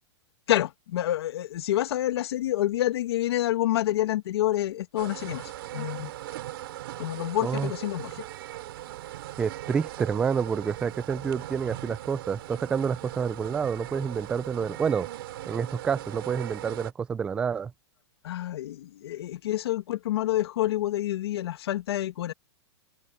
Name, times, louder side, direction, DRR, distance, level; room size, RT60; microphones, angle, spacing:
voice 1, 0.5-6.1 7.0-8.2 18.2-22.3, left 14 dB, 60° left, 1.4 m, -28 dB
sound 1, 5.0-16.9, right 15 dB, 55° right, 2.9 m, -39 dB
voice 2, 9.4-15.1 15.5-17.7, right 6 dB, 5° right, 0.3 m, -28 dB
supercardioid pair, 165°, 15 cm